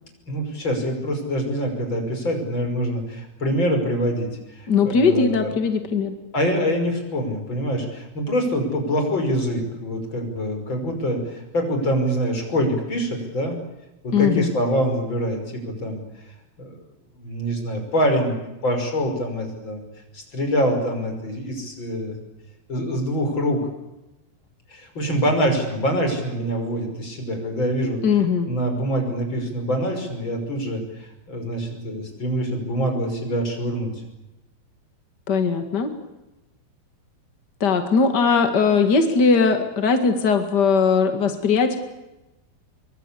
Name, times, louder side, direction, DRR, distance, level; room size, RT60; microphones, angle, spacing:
voice 1, 0.3-5.5 6.3-13.6 14.0-16.0 16.6-16.8 17.2-19.8 20.1-22.1 22.7-23.6 24.7-28.0 28.4-33.9, equal, 25° left, 4 dB, 6.2 m, -25 dB
voice 2, 4.7-6.1 14.1-14.5 28.0-28.5 35.3-35.9 37.6-41.8, left 5 dB, 60° left, 7 dB, 1.1 m, -19 dB
25.5 x 23.5 x 8.5 m, 0.98 s
omnidirectional pair, 5.4 m